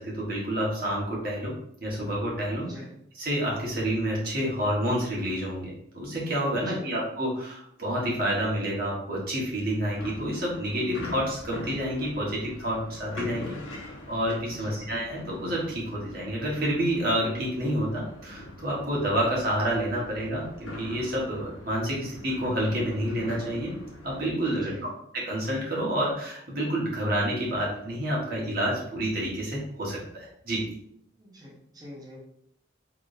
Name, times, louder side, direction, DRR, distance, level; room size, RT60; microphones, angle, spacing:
voice 1, 0.0-1.5 1.8-2.7 3.2-13.6 13.8-23.7 24.0-24.7 25.1-30.7, equal, 50° right, -4 dB, 1.5 m, -29 dB
voice 2, 2.6-2.9 6.5-6.9 14.5-14.8 24.5-24.9 31.2-32.2, equal, 20° right, -3 dB, 0.8 m, -43 dB
sound 1, 10.0-24.2, left 1 dB, 90° left, 0.9 m, -42 dB
4.9 x 3.6 x 2.7 m, 0.73 s
head